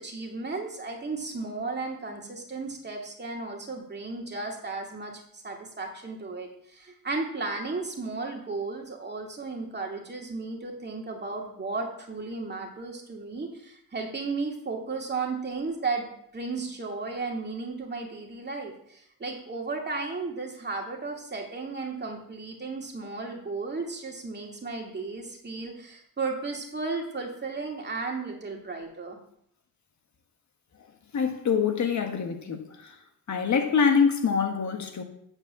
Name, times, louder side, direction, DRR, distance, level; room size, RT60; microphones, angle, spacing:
voice 1, 0.0-29.2, right 3 dB, 30° right, 2.3 m, -34 dB
voice 2, 31.1-33.0 33.3-35.0, left 6 dB, 50° left, 1.4 m, -25 dB
8.7 x 4.4 x 7.4 m
cardioid pair, 100°, 36 cm